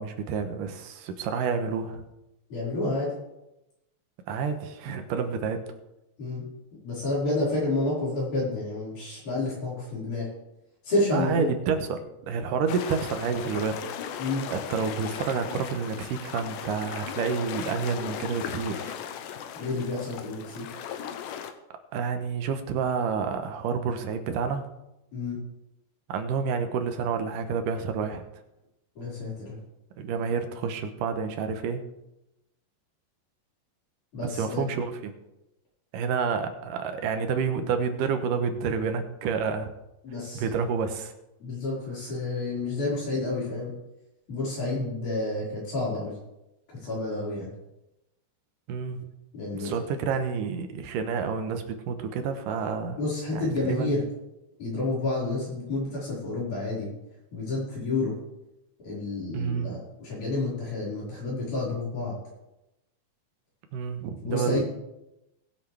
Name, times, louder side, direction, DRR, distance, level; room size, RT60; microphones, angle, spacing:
voice 1, 0.0-2.0 4.3-5.6 11.1-13.8 14.5-19.0 21.9-24.7 26.1-28.2 30.0-31.8 34.2-35.1 35.9-39.7 40.3-41.1 48.7-49.0 49.5-53.0 53.3-54.0 59.3-59.8 63.7-64.6, right 6 dB, 85° right, 7 dB, 2.6 m, -29 dB
voice 2, 2.5-3.1 6.2-6.4 6.8-10.3 10.8-11.6 14.2-14.5 19.5-20.7 25.1-25.4 29.0-29.6 34.1-34.7 40.0-40.5 41.4-43.7 44.3-46.2 46.8-47.5 49.3-49.8 53.0-54.0 54.6-56.9 57.3-58.2 58.8-62.2 64.2-64.6, left 2 dB, 65° left, -7 dB, 6.3 m, -29 dB
sound 1, 12.7-21.5, left 9 dB, 90° left, 2.4 m, -37 dB
19.5 x 8.0 x 3.4 m, 0.92 s
omnidirectional pair, 3.7 m